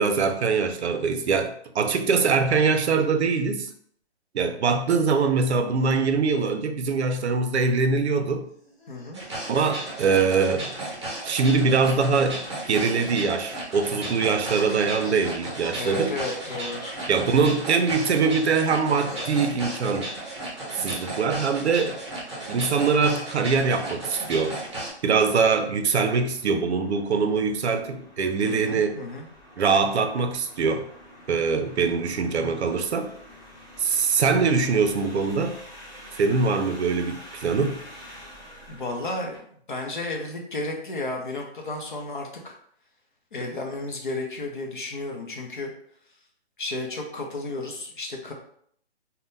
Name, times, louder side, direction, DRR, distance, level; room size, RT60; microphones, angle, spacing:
voice 1, 0.0-3.7 4.3-8.5 9.5-10.7 11.2-16.2 17.1-20.1 20.8-22.0 22.5-24.6 25.0-29.0 29.6-30.9 31.3-33.1 33.8-35.6 36.1-37.8, right 5 dB, 75° right, 7 dB, 0.5 m, -23 dB
sound 1, 8.4-13.8 14.2-19.4, left 1 dB, 30° left, 1.5 m, -45 dB
voice 2, 8.9-9.2 15.8-16.8 28.4-29.3 38.7-39.4 39.7-42.5 43.3-45.7 46.6-48.3, left 2 dB, 45° left, 2 dB, 0.7 m, -33 dB
sound 2, 9.1-24.9, right 1 dB, 25° right, 0.7 m, -35 dB
sound 3, 23.8-39.4, equal, 10° left, 0.7 m, -47 dB
3.6 x 2.2 x 2.6 m, 0.65 s
hypercardioid pair, 175°, 33 cm